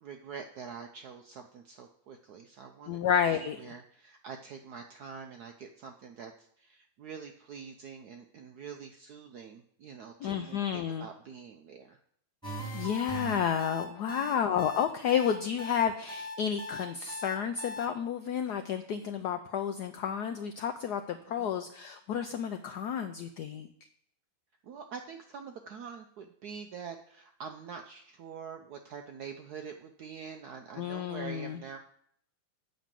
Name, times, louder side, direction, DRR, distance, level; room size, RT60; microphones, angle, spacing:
voice 1, 0.0-3.0 3.3-12.0 14.1-14.4 21.4-21.5 24.6-31.8, right 6 dB, 75° right, 5 dB, 0.9 m, -45 dB
voice 2, 2.9-3.6 10.2-11.1 12.7-23.7 30.8-31.6, left 8 dB, 90° left, 8 dB, 0.9 m, -31 dB
sound 1, 12.4-17.9, left 1 dB, ahead, 1.5 m, -39 dB
8.1 x 5.3 x 7.4 m, 0.69 s
omnidirectional pair, 2.3 m